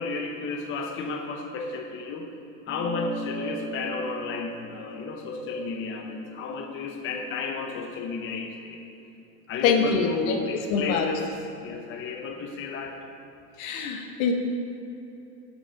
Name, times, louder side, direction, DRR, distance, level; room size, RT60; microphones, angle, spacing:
voice 1, 0.0-2.3 2.7-8.8 9.5-13.0, left 4 dB, 25° left, 2 dB, 0.8 m, -33 dB
sound 1, 2.7-7.5, equal, 15° right, 0.7 m, -39 dB
voice 2, 9.6-10.3 10.7-11.0 13.6-14.3, left 6 dB, 65° left, 4 dB, 1.3 m, -24 dB
7.8 x 6.6 x 5.9 m, 2.9 s
supercardioid pair, 130°, 45 cm